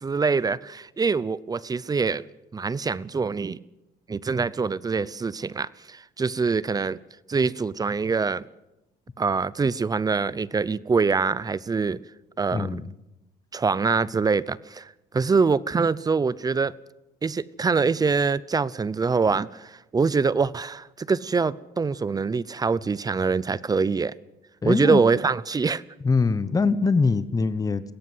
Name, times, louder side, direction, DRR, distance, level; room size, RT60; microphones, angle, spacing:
voice 1, 0.0-2.2 2.5-3.6 4.1-7.0 7.3-8.4 9.2-12.0 12.4-12.8 13.5-16.7 17.2-24.1 24.6-25.8, right 4 dB, 20° right, 0.7 m, -24 dB
voice 2, 12.5-12.8 24.6-25.0 26.0-27.8, left 4 dB, 20° left, 1.1 m, -22 dB
21.5 x 17.0 x 8.0 m
cardioid pair, 110°, 17 cm